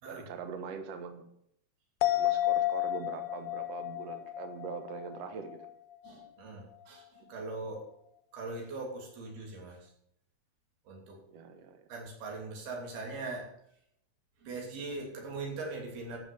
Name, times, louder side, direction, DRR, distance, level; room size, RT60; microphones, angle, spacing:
voice 1, 0.1-1.2 2.1-5.6 11.3-11.8, right 6 dB, 60° right, 7 dB, 1.9 m, -42 dB
sound 1, 2.0-5.7 6.1-6.2, left 14 dB, 80° left, 2.4 m, -31 dB
voice 2, 6.0-7.9 8.3-9.9 10.9-11.2 11.9-13.5 14.4-16.2, right 3 dB, 85° right, 0 dB, 4.9 m, -41 dB
13.5 x 6.2 x 6.9 m, 0.71 s
omnidirectional pair, 4.3 m